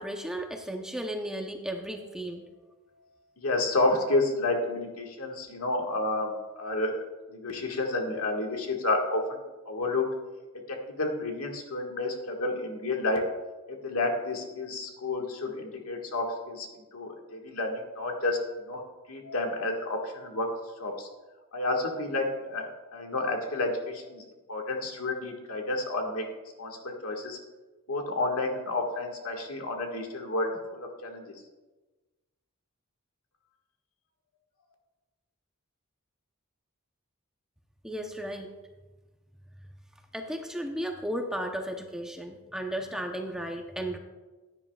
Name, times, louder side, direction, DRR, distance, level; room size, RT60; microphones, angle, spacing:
voice 1, 0.0-2.4 37.8-38.5 40.1-44.0, right 1 dB, 5° right, 3 dB, 0.7 m, -34 dB
voice 2, 3.4-6.3 6.6-10.1 10.7-13.3 13.7-16.7 16.9-18.8 19.1-20.5 20.8-21.1 21.5-24.2 24.5-26.2 26.6-27.4 27.9-31.3, left 2 dB, 85° left, 1 dB, 1.7 m, -30 dB
16.0 x 9.8 x 2.4 m, 1.2 s
head